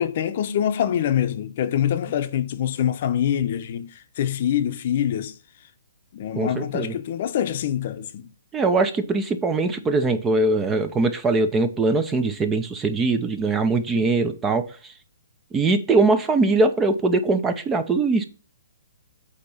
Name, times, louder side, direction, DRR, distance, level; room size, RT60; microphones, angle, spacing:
voice 1, 0.0-5.4 6.1-8.3, left 10 dB, 45° left, 0.7 m, -25 dB
voice 2, 6.3-6.9 8.5-14.9 15.5-18.3, right 3 dB, 15° right, 0.6 m, -21 dB
8.2 x 2.9 x 5.6 m
hypercardioid pair, 150°, 0 cm